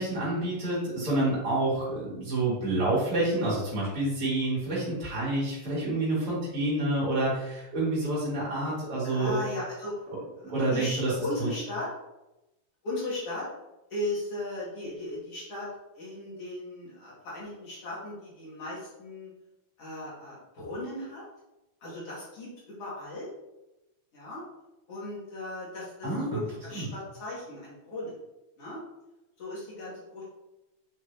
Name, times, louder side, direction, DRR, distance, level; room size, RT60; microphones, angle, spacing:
voice 1, 0.0-9.4 10.4-11.1 11.4-11.5 26.0-26.4 26.7-26.9, right 2 dB, 45° right, -8 dB, 3.6 m, -28 dB
voice 2, 9.0-9.9 10.7-11.9 12.8-13.5 13.9-15.7 16.0-19.3 19.8-21.2 21.8-23.3 24.1-24.4 24.9-28.2 28.6-28.8 29.4-30.2, left 1 dB, 55° left, -8 dB, 2.9 m, -37 dB
7.7 x 6.1 x 2.9 m, 0.96 s
omnidirectional pair, 3.5 m